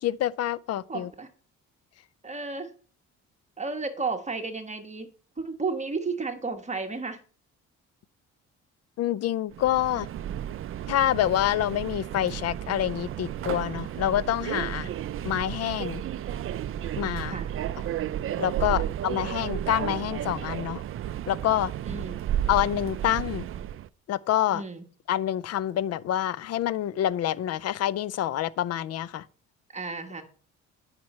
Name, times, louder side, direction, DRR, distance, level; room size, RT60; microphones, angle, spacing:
voice 1, 0.0-1.1 9.0-10.1 10.9-14.9 15.2-16.0 17.0-17.4 18.4-20.8 21.3-21.7 22.5-23.5 24.1-24.6 25.1-29.2, left 12 dB, 55° left, 0.5 m, -27 dB
voice 2, 0.9-1.3 2.2-2.7 3.6-5.1 5.4-7.2 17.3-17.5 18.6-18.8 21.9-22.2 24.5-24.8 29.7-30.2, right 4 dB, 25° right, 1.3 m, -33 dB
Subway metro underground, 9.5-23.9, right 11 dB, 45° right, 0.4 m, -33 dB
9.4 x 5.9 x 4.3 m
cardioid pair, 90°, 30 cm